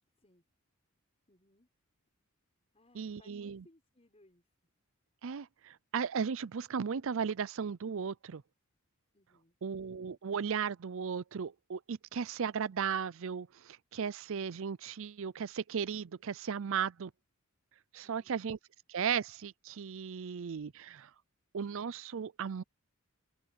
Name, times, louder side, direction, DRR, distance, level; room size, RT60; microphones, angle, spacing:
voice 1, 1.3-1.7 2.7-4.7 9.1-9.6 18.0-18.4, left 1 dB, 30° left, 6.5 m, -66 dB
voice 2, 3.0-3.6 5.2-8.4 9.6-17.1 17.9-18.6 18.9-21.1 21.5-22.6, right 7 dB, 65° right, 0.5 m, -36 dB
head